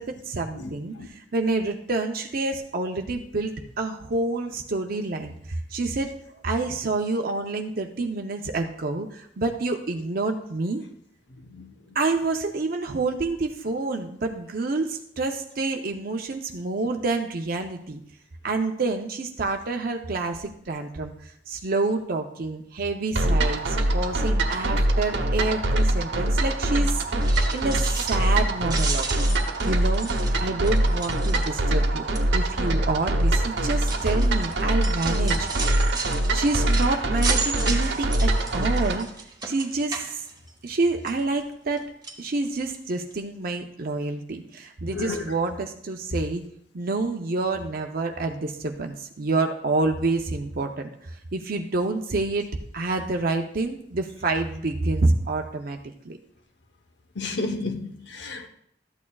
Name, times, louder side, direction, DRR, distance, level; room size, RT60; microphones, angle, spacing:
voice 1, 0.0-6.2 6.4-10.8 11.9-18.0 18.4-27.0 27.5-29.1 29.6-30.1 30.4-35.5 36.3-39.1 39.4-40.2 40.6-41.8 42.2-46.4 46.7-52.5 52.7-55.8 56.0-56.2, right 3 dB, 55° right, 0.6 m, -28 dB
sound 1, 23.2-39.0, right 1 dB, 80° right, 1.0 m, -23 dB
sound 2, 27.1-28.4 28.7-31.8 32.1-32.5 33.2-40.8 41.1-41.8 42.0-42.2 42.7-42.8 43.1-43.2, right 4 dB, 25° right, 1.1 m, -34 dB
voice 2, 44.9-45.2 57.2-58.5, left 3 dB, 80° left, 0.9 m, -31 dB
13.0 x 8.5 x 2.3 m
head